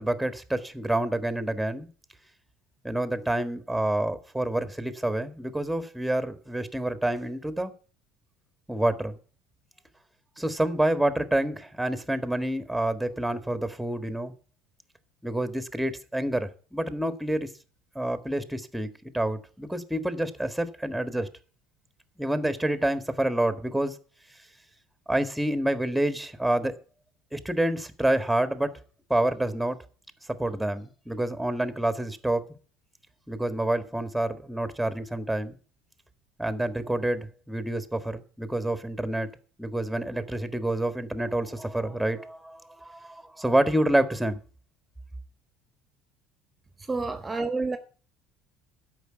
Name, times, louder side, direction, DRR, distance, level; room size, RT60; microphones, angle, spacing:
voice 1, 0.0-1.9 2.8-7.7 8.7-9.2 10.4-14.3 15.2-17.5 17.9-18.9 19.1-21.3 22.2-23.9 25.1-26.7 27.3-28.7 29.1-29.8 30.4-32.4 33.3-35.6 36.4-39.3 39.6-44.4, right 1 dB, 5° right, 1.7 m, -28 dB
voice 2, 46.9-47.8, right 3 dB, 20° right, 1.3 m, -28 dB
12.5 x 5.5 x 9.0 m
hypercardioid pair, 65°, 0 cm